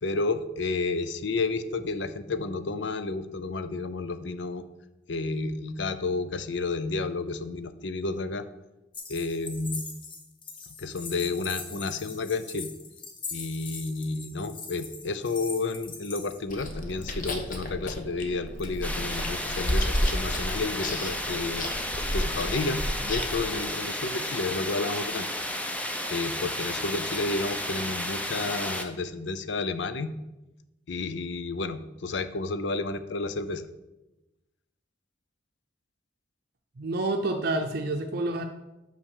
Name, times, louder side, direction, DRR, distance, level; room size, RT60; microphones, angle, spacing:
voice 1, 0.0-4.6 5.1-8.5 9.1-9.9 10.8-12.7 13.3-21.7 22.1-25.3 26.1-30.1 30.9-33.7, left 3 dB, 65° left, 11 dB, 0.6 m, -31 dB
sound 1, 8.9-16.4, left 4 dB, 25° left, 1.0 m, -41 dB
Chewing mastication, 16.5-23.4, equal, 45° left, 1.1 m, -32 dB
sound 2, 18.8-28.8, left 1 dB, 10° left, 0.6 m, -33 dB
voice 2, 36.8-38.4, right 2 dB, 55° right, 4 dB, 0.6 m, -28 dB
6.0 x 5.8 x 6.5 m, 0.99 s
head